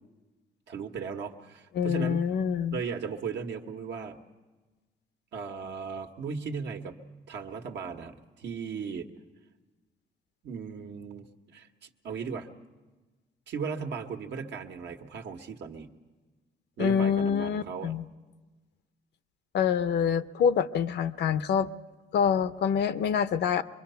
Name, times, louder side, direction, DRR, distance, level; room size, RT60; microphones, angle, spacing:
voice 1, 0.7-2.3 2.7-4.2 5.3-7.0 7.3-9.1 10.4-11.3 11.5-12.5 13.5-15.9 16.8-18.0, right 5 dB, 65° right, 3 dB, 1.5 m, -36 dB
voice 2, 1.7-2.8 16.8-18.0 19.5-21.7 22.1-23.6, left 7 dB, 65° left, 13 dB, 0.7 m, -26 dB
25.0 x 22.5 x 5.7 m, 1.2 s
cardioid pair, 125°, 19 cm